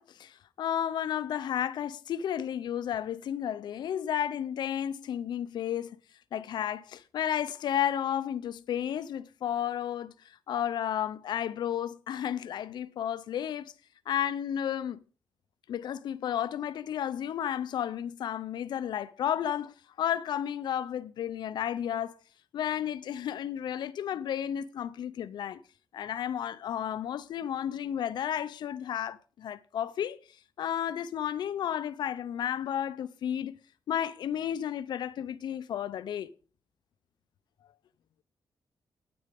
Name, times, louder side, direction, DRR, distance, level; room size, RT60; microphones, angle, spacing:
voice 1, 0.0-6.0 6.3-10.1 10.5-13.7 14.1-15.0 15.7-22.1 22.5-25.6 25.9-30.2 30.6-33.5 33.9-36.3, left 10 dB, 80° left, 0.6 m, -32 dB
9.7 x 8.8 x 5.2 m
wide cardioid pair, 165°, 7 cm